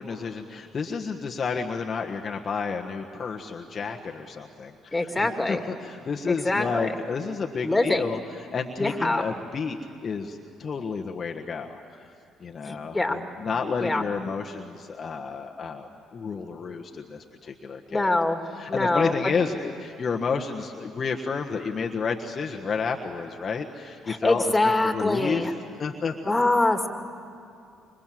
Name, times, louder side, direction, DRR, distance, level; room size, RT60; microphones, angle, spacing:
voice 1, 0.0-8.2 8.5-11.8 12.4-18.1 18.6-25.5 25.8-26.3, left 5 dB, 45° left, 2 dB, 1.5 m, -31 dB
voice 2, 4.9-5.6 6.3-6.9 7.6-8.1 8.8-9.2 12.6-13.2 13.8-14.0 17.9-18.4 18.7-19.1 24.1-25.5 26.2-26.9, left 2 dB, 15° left, 5 dB, 2.7 m, -24 dB
26.0 x 24.0 x 7.7 m, 2.5 s
hypercardioid pair, 55°, 0 cm